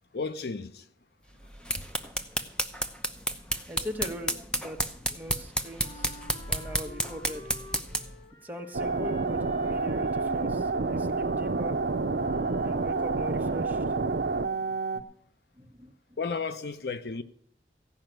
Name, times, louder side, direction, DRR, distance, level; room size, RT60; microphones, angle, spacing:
voice 1, 0.1-0.8 16.2-17.2, left 4 dB, 70° left, 0.7 m, -33 dB
sound 1, 1.4-8.2, equal, 5° left, 0.8 m, -32 dB
voice 2, 3.7-6.2 6.5-7.4 8.4-11.8 12.6-13.8 14.6-15.0 15.6-15.9, equal, 10° right, 1.3 m, -41 dB
Wind instrument woodwind instrument, 5.8-14.0, left 2 dB, 30° left, 0.9 m, -49 dB
sound 2, 8.7-15.0, right 3 dB, 65° right, 0.6 m, -28 dB
15.5 x 5.8 x 9.0 m
head